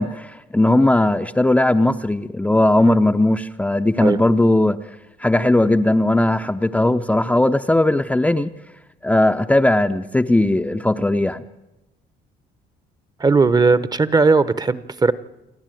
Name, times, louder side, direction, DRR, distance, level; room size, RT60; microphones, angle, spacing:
voice 1, 0.0-4.9 5.2-8.5 9.0-11.4, left 1 dB, 10° left, 6 dB, 0.6 m, -18 dB
voice 2, 13.2-15.1, right 4 dB, 25° right, 16 dB, 0.9 m, -17 dB
28.5 x 10.5 x 9.1 m, 0.96 s
cardioid pair, 110°, 17 cm